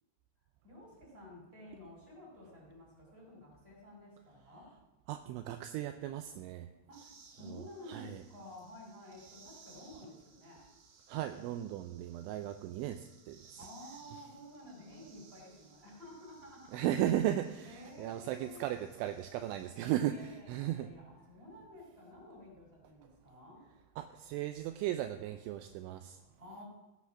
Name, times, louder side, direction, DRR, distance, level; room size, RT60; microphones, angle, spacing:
voice 1, 0.6-4.7 6.9-7.0 7.3-10.7 13.6-16.8 17.6-18.6 20.1-23.6 26.4-26.6, left 1 dB, 10° right, -3 dB, 5.6 m, -52 dB
voice 2, 5.1-6.7 7.4-8.2 11.1-13.6 16.7-20.9 24.0-26.2, right 12 dB, 80° right, 8 dB, 2.9 m, -36 dB
sound 1, 6.9-19.8, right 5 dB, 60° right, 1.9 m, -62 dB
16.0 x 8.2 x 6.0 m, 1.1 s
omnidirectional pair, 5.6 m